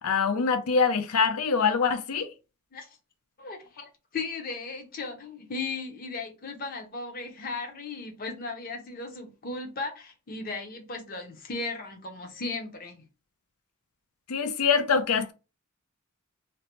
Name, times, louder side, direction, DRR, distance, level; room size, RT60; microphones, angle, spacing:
voice 1, 0.0-2.3 14.3-15.3, left 5 dB, 90° left, 0.5 m, -24 dB
voice 2, 3.4-13.0, left 3 dB, 40° left, 0.7 m, -36 dB
2.8 x 2.1 x 2.9 m
head